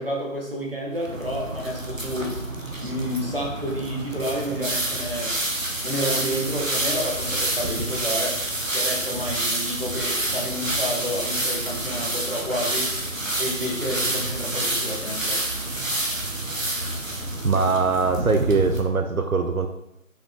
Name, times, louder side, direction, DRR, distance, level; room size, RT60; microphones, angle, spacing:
voice 1, 0.0-2.4 2.8-5.4 5.8-8.4 8.7-12.9 13.4-15.5, equal, 40° right, -2 dB, 1.6 m, -30 dB
sound 1, 1.0-18.8, right 1 dB, 70° right, 1.4 m, -28 dB
voice 2, 17.4-19.7, right 4 dB, 85° right, 6 dB, 0.8 m, -22 dB
6.1 x 5.5 x 3.7 m, 0.81 s
figure-of-eight pair, 175°, 41 cm